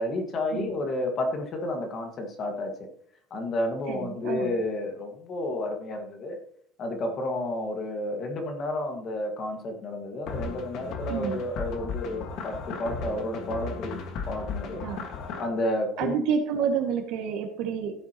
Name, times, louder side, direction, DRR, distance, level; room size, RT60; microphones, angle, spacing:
voice 1, 0.0-2.9 3.3-6.4 6.8-14.0 14.3-14.8 15.4-16.1, left 1 dB, 30° left, 4 dB, 1.8 m, -31 dB
voice 2, 3.9-4.5 11.1-11.4 14.8-15.1 16.0-17.9, right 7 dB, 60° right, 4 dB, 1.9 m, -29 dB
sound 1, 10.3-15.5, left 4 dB, 50° left, 1.6 m, -35 dB
15.5 x 8.3 x 3.0 m, 0.64 s
cardioid pair, 165°, 0 cm